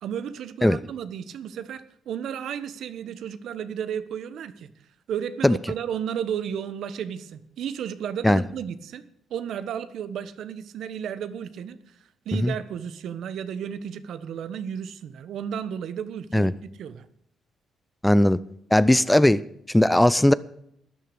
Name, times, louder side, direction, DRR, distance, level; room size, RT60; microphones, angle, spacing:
voice 1, 0.0-4.7 5.1-11.8 12.2-17.1, right 8 dB, 75° right, 13 dB, 1.1 m, -33 dB
voice 2, 18.0-18.4 18.7-19.4 19.7-20.3, left 1 dB, 5° left, 18 dB, 0.5 m, -18 dB
12.5 x 10.0 x 6.8 m, 0.73 s
cardioid pair, 90°, 0 cm